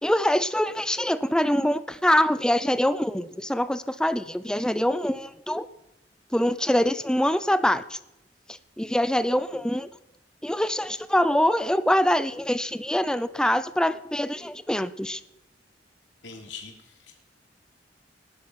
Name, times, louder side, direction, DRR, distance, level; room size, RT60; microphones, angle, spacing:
voice 1, 0.0-5.7 6.3-8.0 8.8-9.9 10.4-15.2, left 1 dB, 5° left, 14 dB, 0.6 m, -24 dB
voice 2, 16.2-17.3, left 5 dB, 90° left, 2 dB, 3.2 m, -43 dB
19.0 x 11.5 x 5.8 m, 0.91 s
head